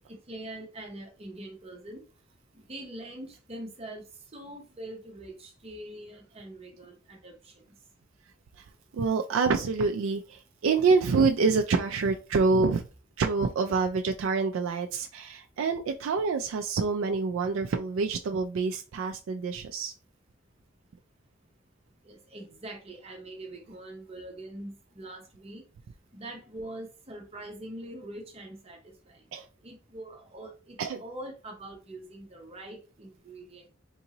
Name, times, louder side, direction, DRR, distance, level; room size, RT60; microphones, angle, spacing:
voice 1, 0.0-2.0 2.5-4.0 4.3-7.6 22.0-25.7 26.1-29.2 29.6-33.7, right 1 dB, 30° right, 0.9 m, -43 dB
voice 2, 8.9-12.8 13.2-19.9 29.3-29.5 30.8-31.0, right 4 dB, 80° right, 0.4 m, -26 dB
3.7 x 2.7 x 2.8 m
head